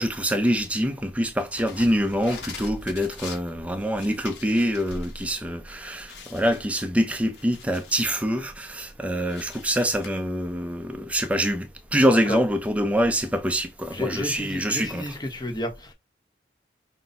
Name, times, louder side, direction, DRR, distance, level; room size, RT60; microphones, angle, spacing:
voice 1, 0.0-15.1, equal, 5° right, 0.5 m, -25 dB
sound 1, 1.4-5.4 5.7-5.8 6.1-8.3 8.7-10.1, left 4 dB, 80° left, 1.4 m, -43 dB
voice 2, 13.9-15.9, left 1 dB, 25° left, 0.9 m, -31 dB
5.2 x 2.2 x 4.1 m
head